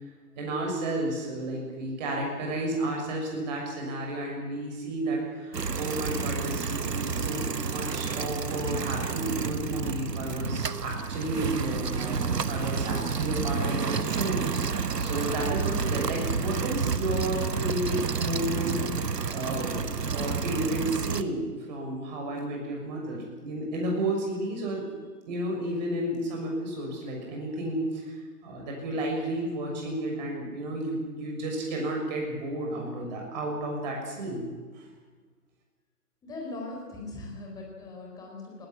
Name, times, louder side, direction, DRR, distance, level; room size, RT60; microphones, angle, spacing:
voice 1, 0.3-12.2 12.5-19.8 20.1-24.9 25.3-34.5 34.7-34.8, right 1 dB, 25° right, 0 dB, 6.6 m, -32 dB
sound 1, 5.5-21.2, right 5 dB, 80° right, 1.3 m, -30 dB
voice 2, 36.2-38.7, left 2 dB, 5° left, 0 dB, 4.0 m, -40 dB
19.5 x 17.0 x 9.8 m, 1.4 s
figure-of-eight pair, 150°, 48 cm